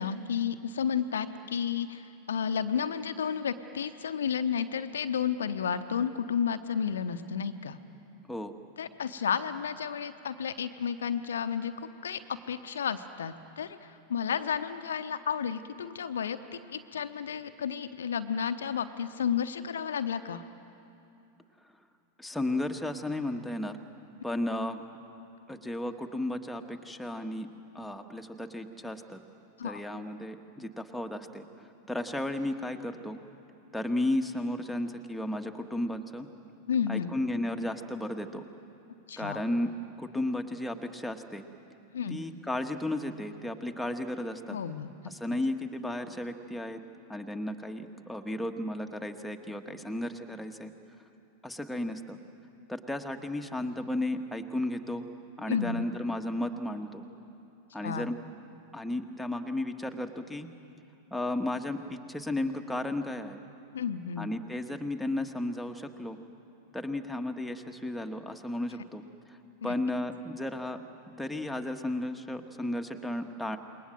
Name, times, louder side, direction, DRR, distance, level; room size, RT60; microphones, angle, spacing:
voice 1, 0.0-7.8 8.8-20.4 29.6-29.8 36.7-37.1 39.1-39.4 41.9-42.2 44.5-44.9 55.5-55.8 57.8-58.1 63.7-64.3 69.6-69.7, left 7 dB, 65° left, 9 dB, 0.9 m, -32 dB
voice 2, 22.2-23.8 24.2-24.8 25.5-27.5 27.7-29.2 29.6-33.2 33.7-36.3 36.9-38.4 39.2-39.7 40.0-41.4 42.1-44.6 45.1-46.8 47.1-50.7 51.4-52.2 52.7-55.0 55.4-57.1 57.7-58.2 58.7-60.5 61.1-63.4 64.2-66.2 66.7-69.0 69.6-70.8 71.2-73.6, left 1 dB, ahead, 4 dB, 1.5 m, -34 dB
27.5 x 21.5 x 7.7 m, 2.9 s
figure-of-eight pair, 90°, 0 cm